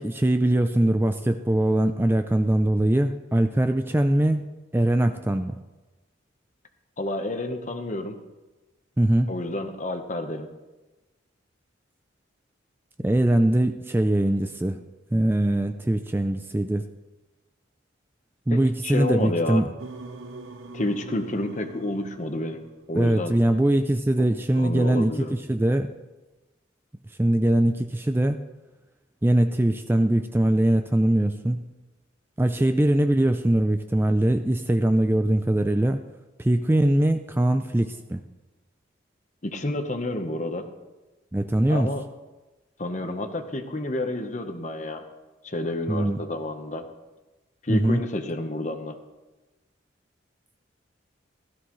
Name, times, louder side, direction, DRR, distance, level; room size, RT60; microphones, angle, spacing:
voice 1, 0.0-4.5 4.7-5.6 9.0-9.3 13.0-14.8 15.1-16.9 18.5-19.7 23.0-25.9 27.2-28.4 29.2-31.6 32.4-36.0 36.4-38.2 41.3-41.9 45.9-46.2 47.7-48.0, right 1 dB, 10° right, 8 dB, 0.3 m, -22 dB
voice 2, 7.0-8.2 9.3-10.5 18.5-19.6 20.7-23.4 24.5-25.4 39.4-40.7 41.7-42.0 42.8-45.0 45.4-46.9 47.6-49.0, left 1 dB, 40° left, 7 dB, 1.0 m, -30 dB
sound 1, 19.8-23.1, right 2 dB, 85° right, 0.9 m, -42 dB
16.5 x 13.5 x 3.1 m, 1.1 s
head